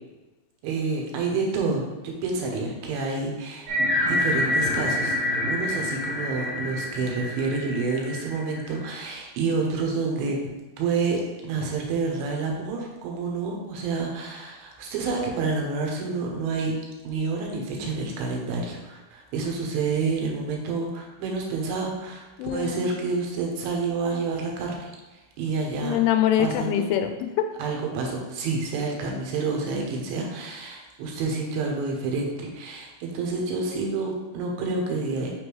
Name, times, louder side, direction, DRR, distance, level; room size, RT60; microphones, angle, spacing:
voice 1, 0.6-3.7 4.1-5.2 5.5-16.8 17.0-22.3 22.5-24.9 25.4-26.0 26.4-26.9 27.6-35.3, right 4 dB, 75° right, 1 dB, 2.6 m, -28 dB
sound 1, 3.7-8.9, left 1 dB, 60° right, 2.6 m, -27 dB
voice 2, 22.4-22.9 25.8-27.5, left 10 dB, 90° left, 6 dB, 2.6 m, -24 dB
6.0 x 5.1 x 3.1 m, 1.2 s
omnidirectional pair, 4.6 m